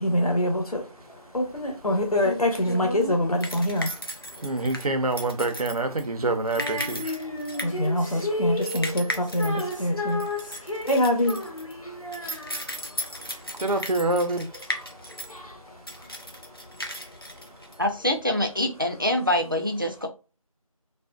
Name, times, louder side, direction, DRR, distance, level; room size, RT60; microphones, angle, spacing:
voice 1, 0.0-0.8 1.3-4.0 7.6-10.2 10.8-11.4 11.8-11.9 12.2-12.3 15.3-15.6, left 1 dB, 80° left, 1.0 m, -25 dB
sound 1, 1.5-18.2, equal, 40° left, 0.4 m, -37 dB
voice 2, 4.4-7.2 13.3-14.5, right 2 dB, 90° right, 0.6 m, -26 dB
Female singing, 6.6-13.1, left 2 dB, 60° left, 0.8 m, -33 dB
voice 3, 17.8-20.1, left 1 dB, 35° right, 0.3 m, -25 dB
2.4 x 2.1 x 2.3 m
figure-of-eight pair, 175°, 19 cm